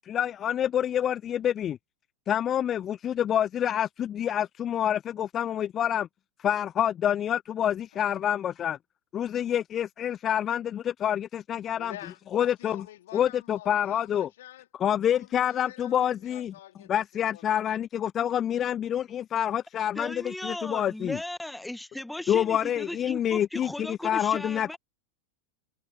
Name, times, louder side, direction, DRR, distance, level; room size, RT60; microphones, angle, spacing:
voice 1, 0.0-1.8 2.3-6.1 6.4-8.8 9.1-11.9 12.3-12.8 13.1-14.3 14.8-16.5 16.9-21.2 22.3-24.8, left 10 dB, 25° left, 0.4 m, -27 dB
voice 2, 11.8-14.7 15.1-17.6, left 14 dB, 55° left, 3.6 m, -47 dB
voice 3, 19.9-24.8, left 1 dB, 5° left, 1.6 m, -37 dB
figure-of-eight pair, 90°, 0 cm